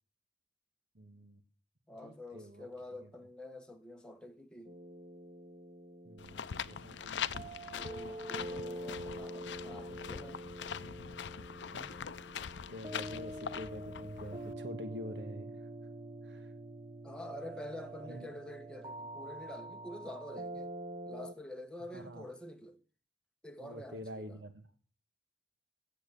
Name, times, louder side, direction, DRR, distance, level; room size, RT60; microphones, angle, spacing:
voice 1, 0.9-1.4 2.0-2.7 6.0-7.5 11.6-11.9 12.7-15.7 16.2-16.5 18.0-18.3 21.9-22.3 23.6-24.6, equal, 70° right, 1.4 m, -46 dB
voice 2, 1.9-4.8 7.7-10.4 17.0-20.7 21.0-22.8 23.4-24.4, left 1 dB, 5° left, 1.2 m, -47 dB
sound 1, 4.6-21.3, right 1 dB, 30° right, 0.6 m, -46 dB
sound 2, 6.2-14.5, left 7 dB, 80° left, 0.5 m, -42 dB
9.2 x 7.5 x 8.3 m
head